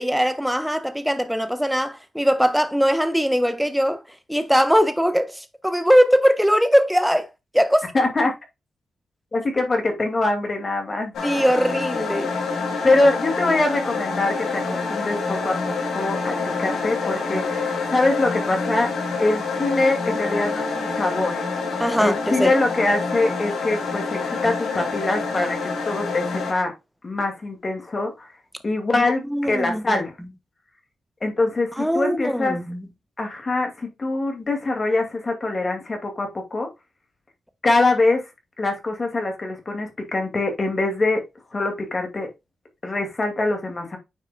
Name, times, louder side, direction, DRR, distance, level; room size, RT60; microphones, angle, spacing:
voice 1, 0.0-4.0 4.3-7.8 11.2-12.3 21.8-22.5 28.9-30.0 31.8-32.8, equal, ahead, 1.1 m, -21 dB
voice 2, 7.9-8.3 9.3-11.1 12.8-15.6 15.9-18.9 19.2-21.4 22.0-26.7 27.0-28.3 28.6-30.1 31.2-32.6 33.2-36.7 37.6-38.2 38.6-41.2 41.5-42.3 42.8-44.0, left 2 dB, 35° left, 2.3 m, -23 dB
sound 1, 11.1-26.5, left 4 dB, 80° left, 2.4 m, -27 dB
9.4 x 4.6 x 2.3 m
cardioid pair, 75°, 0 cm